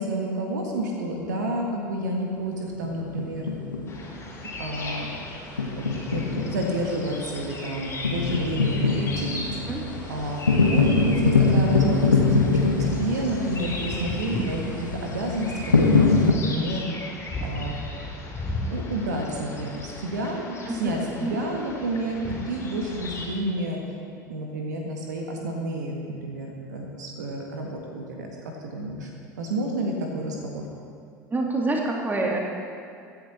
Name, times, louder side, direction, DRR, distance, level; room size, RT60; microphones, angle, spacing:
voice 1, 0.0-3.5 4.6-5.1 5.8-9.5 10.1-15.5 15.8-16.8 17.4-17.8 18.7-23.8 24.3-29.1 29.4-30.6, right 1 dB, 70° right, 1 dB, 1.8 m, -30 dB
sound 1, 2.8-4.3 4.6-4.7 5.6-16.3, left 4 dB, 85° left, 1.0 m, -23 dB
sound 2, 3.9-23.3, left 1 dB, 25° left, 3.5 m, -36 dB
voice 2, 20.7-21.4 31.3-32.4, right 2 dB, 20° right, 0 dB, 2.2 m, -27 dB
16.0 x 10.5 x 4.4 m, 2.3 s
figure-of-eight pair, 70°, 10 cm